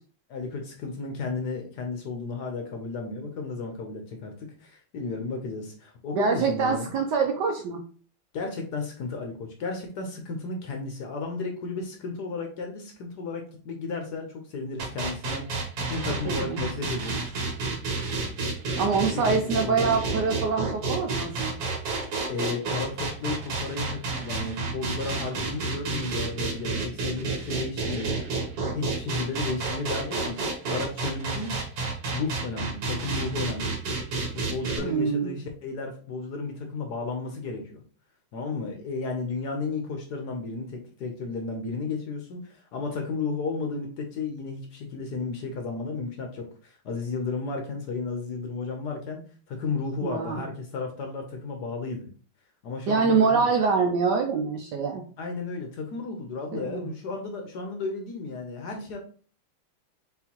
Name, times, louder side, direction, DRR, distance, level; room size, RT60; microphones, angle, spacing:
voice 1, 0.3-6.9 8.3-17.4 19.1-19.9 22.3-28.2 28.7-31.5 32.1-33.7 34.3-37.8 38.3-49.2 49.5-52.1 52.6-53.5 55.2-59.0, left 4 dB, 65° left, 3 dB, 1.1 m, -33 dB
voice 2, 6.1-7.8 16.1-16.6 18.8-21.6 34.8-35.4 50.0-50.4 52.9-55.0 56.5-56.9, right 5 dB, 75° right, 4 dB, 1.0 m, -25 dB
sound 1, 14.8-34.8, right 3 dB, 55° right, 1.4 m, -30 dB
4.4 x 3.8 x 2.9 m, 0.42 s
omnidirectional pair, 2.3 m